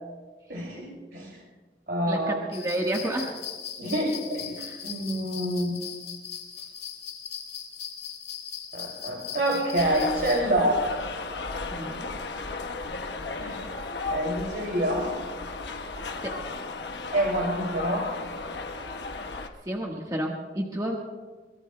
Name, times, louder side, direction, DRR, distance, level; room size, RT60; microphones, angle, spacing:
voice 1, 0.5-1.4 1.9-2.4 3.8-5.8 8.7-10.8 11.7-12.0 13.4-13.8 14.1-15.1 17.1-18.1, right 1 dB, 65° right, -1 dB, 2.7 m, -27 dB
voice 2, 2.1-3.3 4.6-4.8 11.7-11.9 16.2-16.4 19.2-21.0, right 1 dB, 20° right, -1 dB, 1.3 m, -31 dB
sound 1, 2.5-10.4, left 8 dB, 65° left, 2.2 m, -39 dB
sound 2, 9.8-19.5, left 3 dB, 90° left, 1.1 m, -35 dB
24.0 x 22.0 x 2.2 m, 1.3 s
head